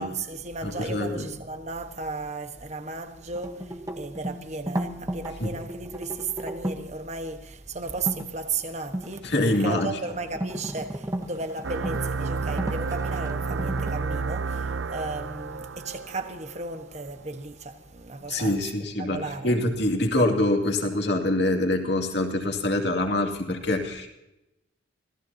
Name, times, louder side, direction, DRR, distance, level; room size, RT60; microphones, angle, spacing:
voice 1, 0.0-9.3 9.6-18.6 19.0-19.6, right 3 dB, 35° right, 1.4 m, -35 dB
voice 2, 0.6-1.3 5.4-5.5 9.2-10.0 18.3-24.1, left 1 dB, 60° left, 2.5 m, -25 dB
sound 1, 3.3-6.9 7.9-8.2 8.8-13.9, right 1 dB, 15° right, 1.2 m, -34 dB
sound 2, 11.6-16.9, right 4 dB, 75° right, 0.6 m, -31 dB
26.0 x 17.0 x 2.9 m
head